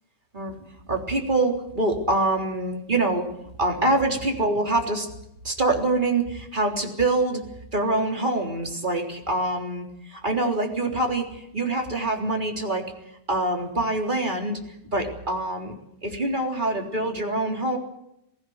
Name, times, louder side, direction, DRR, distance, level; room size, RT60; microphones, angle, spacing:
voice 1, 0.9-3.3 3.6-5.1 5.4-7.4 7.7-12.9 13.3-14.6 14.9-15.7 16.0-17.8, right 2 dB, 15° right, 1 dB, 3.5 m, -25 dB
21.5 x 16.5 x 9.6 m, 0.81 s
omnidirectional pair, 3.7 m